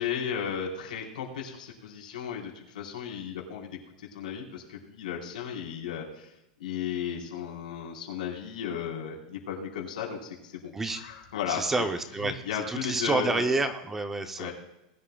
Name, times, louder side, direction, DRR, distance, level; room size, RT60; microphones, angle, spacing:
voice 1, 0.0-6.3 6.6-11.9 12.2-13.5 14.4-14.5, left 8 dB, 85° left, 0 dB, 4.0 m, -35 dB
voice 2, 11.5-12.4 12.7-14.5, right 3 dB, 10° right, 8 dB, 0.6 m, -28 dB
20.5 x 12.0 x 2.3 m, 0.88 s
supercardioid pair, 175°, 4 cm